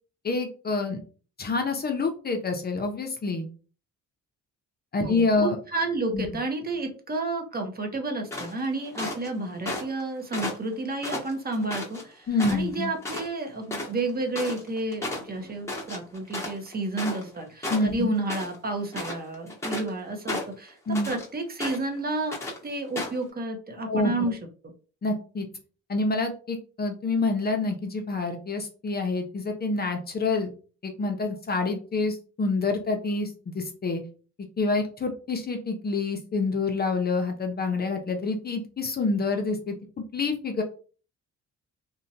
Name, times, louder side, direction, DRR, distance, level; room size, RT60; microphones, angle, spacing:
voice 1, 0.2-1.0 1.4-3.5 4.9-5.6 6.1-6.3 12.3-12.9 17.7-18.1 20.9-21.1 23.9-24.3 25.0-25.5 25.9-30.5 30.8-34.0 34.6-40.6, left 3 dB, 30° left, 4 dB, 0.5 m, -27 dB
voice 2, 5.0-22.4 22.6-24.4, right 2 dB, 30° right, 3 dB, 0.7 m, -31 dB
sound 1, 8.3-9.3 9.7-10.0 10.3-12.0 12.4-12.7 13.0-13.3 13.5-17.4 17.6-18.6 18.9-19.9 20.3-21.3 21.6-22.0 22.3-22.6 23.0-23.2, left 2 dB, 10° left, 0.9 m, -33 dB
2.7 x 2.1 x 2.7 m, 0.39 s
cardioid pair, 90°, 30 cm